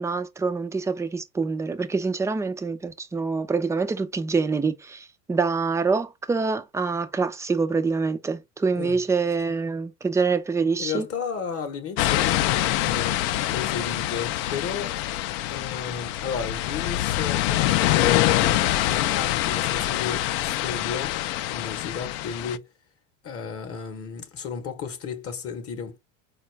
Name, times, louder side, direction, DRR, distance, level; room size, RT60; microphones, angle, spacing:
voice 1, 0.0-11.1, right 4 dB, 10° right, 0.3 m, -25 dB
voice 2, 10.8-13.2 13.5-15.0 15.5-22.7 23.2-26.0, left 7 dB, 35° left, 0.8 m, -33 dB
sound 1, 12.0-22.6, left 14 dB, 65° left, 0.5 m, -25 dB
4.2 x 2.3 x 3.1 m
hypercardioid pair, 95°, 39 cm